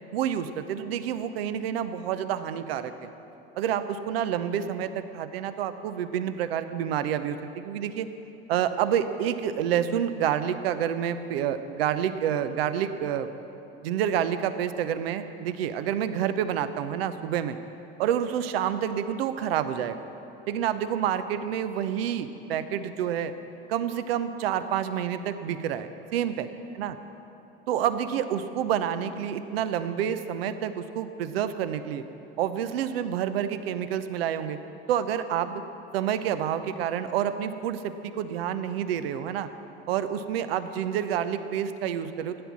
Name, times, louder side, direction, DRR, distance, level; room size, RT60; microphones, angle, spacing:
voice 1, 0.1-3.1 3.6-8.1 8.5-13.3 13.8-17.6 18.0-20.1 20.5-23.3 23.7-26.5 26.7-27.0 27.7-32.0 32.4-34.6 34.9-35.6 35.9-39.5 39.9-42.4, right 9 dB, 80° right, 11 dB, 0.8 m, -28 dB
14.5 x 9.7 x 7.3 m, 2.8 s
hypercardioid pair, 80°, 29 cm